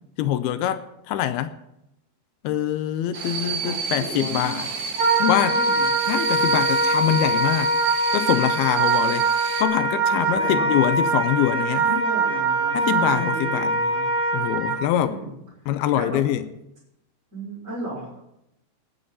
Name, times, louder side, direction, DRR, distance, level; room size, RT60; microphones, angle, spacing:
voice 1, 0.2-1.5 2.4-4.7 5.2-5.6 6.1-7.7 8.1-9.3 9.6-12.0 12.7-13.8 14.3-15.2 15.7-16.5, left 11 dB, 80° left, 2.4 m, -24 dB
sound 1, 3.1-9.6, right 6 dB, 70° right, 1.9 m, -31 dB
voice 2, 3.6-4.9 5.4-5.9 10.1-10.8 11.8-14.0 15.0-15.3 15.9-16.2 17.3-18.2, right 3 dB, 20° right, 6.2 m, -35 dB
Wind instrument woodwind instrument, 5.0-14.8, right 3 dB, 85° right, 1.0 m, -23 dB
18.0 x 9.3 x 4.1 m
omnidirectional pair, 4.7 m